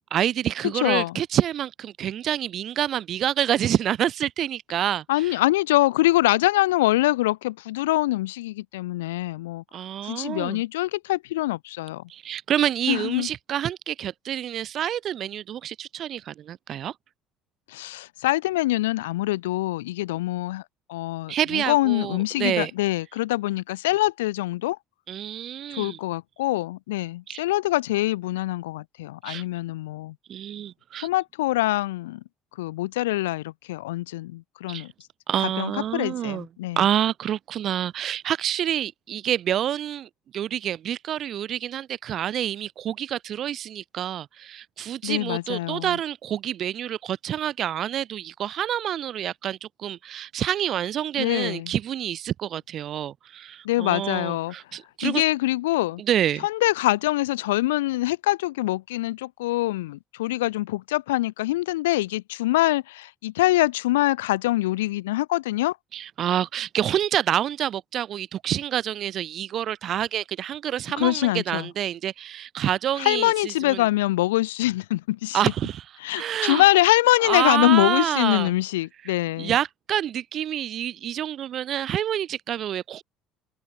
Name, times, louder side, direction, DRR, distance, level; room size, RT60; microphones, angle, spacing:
voice 1, 0.0-5.4 9.7-10.6 12.1-16.9 21.3-22.7 25.1-26.0 27.3-27.4 29.2-29.4 30.3-31.1 34.7-34.9 35.3-36.5 36.8-55.2 56.0-56.5 65.9-73.8 75.3-75.9 76.1-76.6 77.2-78.5 79.0-83.0, right 10 dB, 55° right, 7.5 m, -27 dB
voice 2, 0.8-1.1 5.1-9.6 10.0-12.0 12.9-13.3 17.7-20.6 20.9-24.8 25.8-30.1 31.0-32.2 32.6-34.9 35.6-36.8 45.0-46.0 51.2-51.7 53.6-54.5 55.0-56.0 56.4-65.8 71.0-71.7 73.0-75.4 76.0-79.5, left 17 dB, 85° left, 6.4 m, -24 dB
hypercardioid pair, 65°, 0 cm